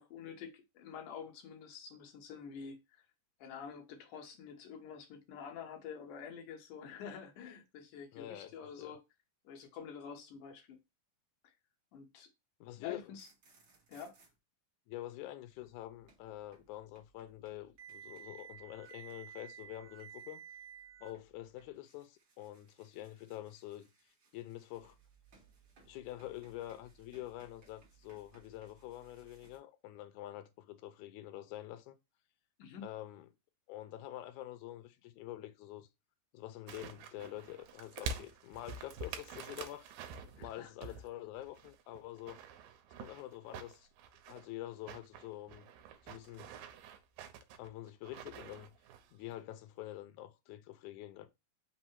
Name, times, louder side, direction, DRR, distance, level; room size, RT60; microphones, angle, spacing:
voice 1, 0.0-3.1 3.4-9.0 9.4-10.8 11.4-11.5 11.9-12.3 12.8-13.3 13.9-14.2 32.6-32.9 40.4-40.7, left 7 dB, 70° left, 2.3 m, -48 dB
voice 2, 8.1-8.5 8.8-8.9 12.6-13.1 14.9-20.4 21.0-23.9 24.3-25.0 25.9-32.0 32.8-33.3 33.7-35.9 36.3-39.9 40.4-42.4 43.0-43.9 44.3-45.7 46.0-46.6 47.6-48.7 49.1-51.3, left 14 dB, 90° left, 1.7 m, -46 dB
sound 1, 13.0-14.3 15.5-29.6, right 8 dB, 60° right, 1.2 m, -58 dB
sound 2, 36.7-41.1 41.4-44.5 44.8-49.1 49.4-49.5, right 5 dB, 80° right, 2.3 m, -47 dB
5.5 x 2.0 x 4.4 m
omnidirectional pair, 4.0 m